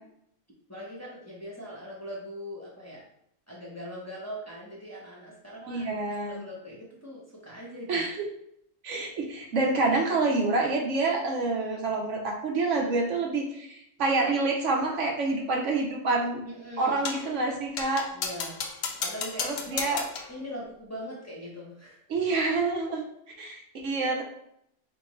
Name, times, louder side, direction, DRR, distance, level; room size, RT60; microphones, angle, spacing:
voice 1, 0.7-3.0 3.5-8.0 16.4-17.0 18.1-18.6 19.0-20.0 20.3-22.0, equal, 15° left, -5 dB, 1.1 m, -41 dB
voice 2, 5.7-6.4 7.9-8.2 8.8-16.4 16.8-18.1 19.4-20.0 22.1-23.0 23.4-24.2, right 3 dB, 70° right, 0 dB, 1.1 m, -27 dB
sound 1, 17.0-17.3 17.8-20.4, left 5 dB, 85° left, 1.0 m, -34 dB
4.5 x 3.6 x 3.1 m, 0.73 s
omnidirectional pair, 1.3 m